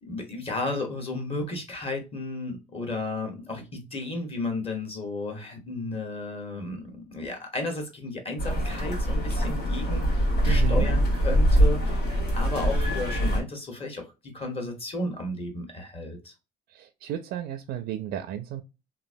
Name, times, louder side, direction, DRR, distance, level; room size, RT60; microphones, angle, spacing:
voice 1, 0.0-16.3, left 2 dB, 35° left, 1.3 m, -33 dB
sound 1, 8.4-13.4, equal, 65° left, 1.5 m, -23 dB
voice 2, 10.5-10.9 16.7-18.6, right 10 dB, 75° right, 0.4 m, -33 dB
3.0 x 2.6 x 2.5 m
cardioid pair, 110°, 17 cm